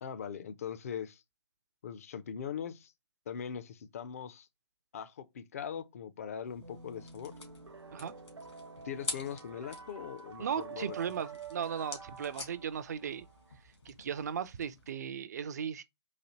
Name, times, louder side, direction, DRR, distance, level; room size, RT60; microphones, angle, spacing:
voice 1, 0.0-1.2 1.8-2.9 3.3-4.5 4.9-7.3 8.8-11.0, left 8 dB, 35° left, 0.4 m, -41 dB
sound 1, 6.5-14.9, left 3 dB, 70° left, 1.7 m, -47 dB
sound 2, 6.6-13.6, right 5 dB, 80° right, 1.0 m, -49 dB
voice 2, 10.4-13.3 13.9-15.8, right 8 dB, 40° right, 0.4 m, -37 dB
4.0 x 2.7 x 2.8 m
figure-of-eight pair, 145°, 14 cm